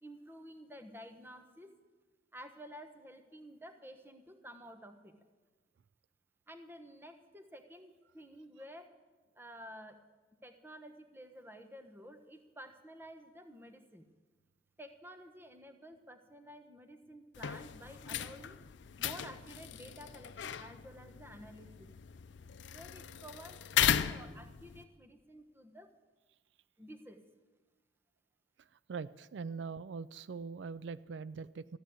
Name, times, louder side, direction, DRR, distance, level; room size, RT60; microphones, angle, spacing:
voice 1, 0.0-1.7 2.3-5.2 6.5-9.0 9.3-10.0 10.4-14.1 14.8-18.6 19.0-21.9 22.7-25.9 26.8-27.2, equal, 10° right, 7 dB, 1.0 m, -52 dB
sound 1, 17.3-24.8, left 9 dB, 80° left, 0.5 m, -37 dB
voice 2, 28.9-31.8, right 5 dB, 75° right, 17 dB, 0.4 m, -42 dB
14.0 x 10.5 x 8.6 m, 1.3 s
head